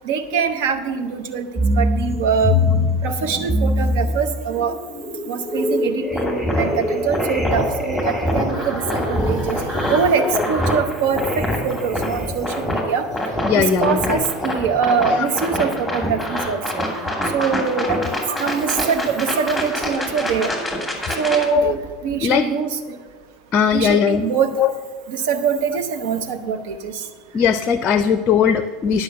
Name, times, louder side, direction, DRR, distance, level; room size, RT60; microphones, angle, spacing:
voice 1, 0.0-2.6 3.0-4.7 5.3-13.1 13.5-16.6 17.3-18.0 18.3-20.5 21.2-23.0 23.7-24.5 25.1-26.9, right 6 dB, 60° right, 7 dB, 0.9 m, -23 dB
sound 1, 1.6-17.5 18.1-18.8 19.3-19.4, left 2 dB, 20° right, 3.3 m, -26 dB
sound 2, 6.1-21.5, equal, ahead, 2.6 m, -25 dB
voice 2, 13.4-14.2 15.1-15.3 17.8-18.1 21.5-21.7 22.2-22.5 23.5-24.3 24.6-24.7 27.3-29.0, left 7 dB, 35° left, 11 dB, 0.5 m, -19 dB
10.0 x 5.9 x 7.7 m, 1.4 s
figure-of-eight pair, 75°, 0 cm